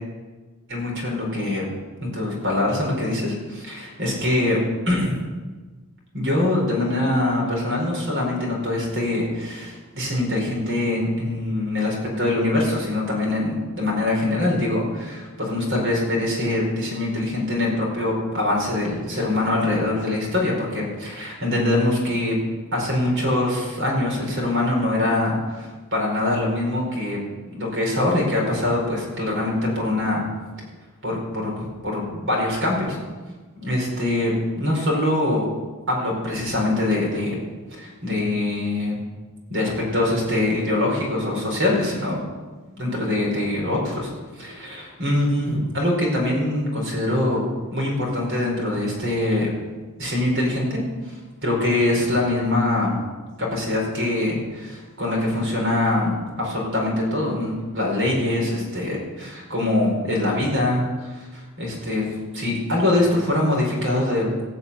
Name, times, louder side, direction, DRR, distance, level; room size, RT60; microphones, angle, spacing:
voice 1, 0.7-1.7 2.0-4.6 4.8-5.2 6.1-22.4 22.7-27.2 27.5-30.2 31.0-33.0 33.5-35.4 35.9-37.3 37.8-39.0 39.5-42.2 42.8-47.4 47.7-49.5 50.0-50.8 51.1-53.0 53.4-62.1 62.3-64.3, left 1 dB, 55° right, -2 dB, 4.8 m, -23 dB
18.0 x 6.7 x 8.4 m, 1.3 s
head